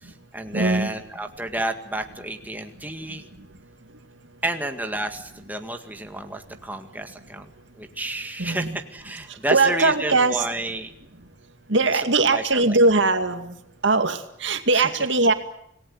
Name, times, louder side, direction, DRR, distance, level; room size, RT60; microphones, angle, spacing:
voice 1, 0.0-3.2 4.4-7.5 7.8-10.9 11.9-12.8 14.7-14.9, right 1 dB, 10° right, 5 dB, 1.9 m, -31 dB
voice 2, 0.5-0.9 3.1-3.2 8.4-8.8 9.3-10.5 11.7-13.6 13.8-15.3, right 3 dB, 80° right, 7 dB, 2.2 m, -20 dB
27.0 x 19.0 x 9.6 m, 0.74 s
head